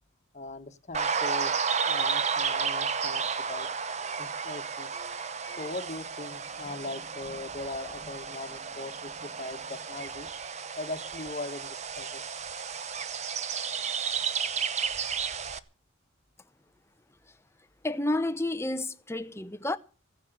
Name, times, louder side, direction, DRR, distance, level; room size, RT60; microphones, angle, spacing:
voice 1, 0.3-3.2 3.5-3.7 4.2-4.9 5.6-10.3 10.8-12.2, left 2 dB, 35° left, 1.3 m, -40 dB
sound 1, 0.9-15.6, right 6 dB, 35° right, 0.8 m, -32 dB
sound 2, 1.6-7.5, right 2 dB, 80° right, 3.4 m, -58 dB
voice 2, 17.8-19.8, left 2 dB, 15° left, 0.8 m, -30 dB
15.0 x 10.0 x 8.0 m
head